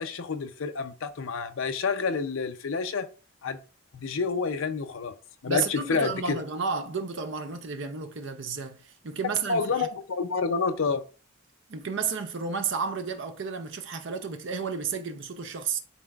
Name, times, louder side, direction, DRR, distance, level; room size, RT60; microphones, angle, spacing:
voice 1, 0.0-3.1 3.4-3.6 3.9-5.1 5.4-6.4 9.5-11.0, left 4 dB, 65° left, 0.5 m, -28 dB
voice 2, 5.5-9.9 11.7-15.8, right 5 dB, 55° right, 0.6 m, -32 dB
11.0 x 4.2 x 2.3 m
head